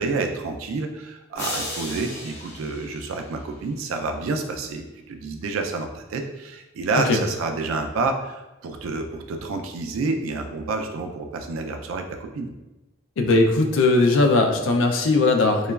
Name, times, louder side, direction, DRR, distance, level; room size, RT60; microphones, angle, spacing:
voice 1, 0.0-12.5, right 3 dB, 85° right, 5 dB, 0.3 m, -29 dB
sound 1, 1.4-3.7, left 1 dB, 55° left, 1.0 m, -35 dB
voice 2, 13.2-15.7, left 3 dB, 75° left, 4 dB, 0.3 m, -19 dB
2.9 x 2.3 x 2.2 m, 1.0 s
head